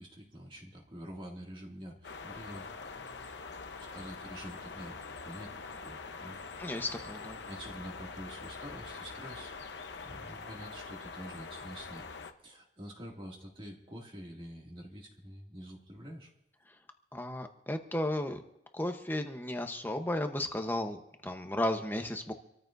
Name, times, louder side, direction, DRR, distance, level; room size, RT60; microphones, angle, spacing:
voice 1, 0.0-3.3 3.8-6.8 7.5-12.1 12.4-16.3, equal, 30° right, -1 dB, 2.3 m, -47 dB
sound 1, 2.0-12.3, left 4 dB, 75° left, 0.9 m, -44 dB
voice 2, 6.6-7.4 17.1-18.4 18.7-21.0 21.2-22.3, left 1 dB, 10° left, 6 dB, 0.9 m, -34 dB
26.5 x 14.0 x 2.6 m, 0.88 s
head